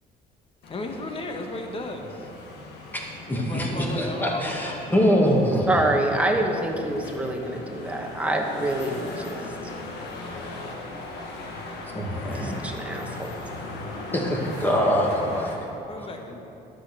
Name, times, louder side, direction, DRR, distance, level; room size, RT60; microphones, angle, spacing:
sound 1, 0.6-15.5, left 2 dB, 80° left, 1.7 m, -39 dB
voice 1, 0.6-2.3 3.4-5.0 15.9-16.4, left 2 dB, 35° left, 3 dB, 1.4 m, -35 dB
voice 2, 3.3-5.8 11.8-12.6 14.1-15.6 16.0-16.1, equal, 10° left, -2 dB, 2.1 m, -24 dB
voice 3, 5.7-9.4 12.4-13.3, right 1 dB, 10° right, 1 dB, 1.4 m, -26 dB
11.5 x 6.5 x 6.9 m, 2.8 s
cardioid pair, 110°, 17 cm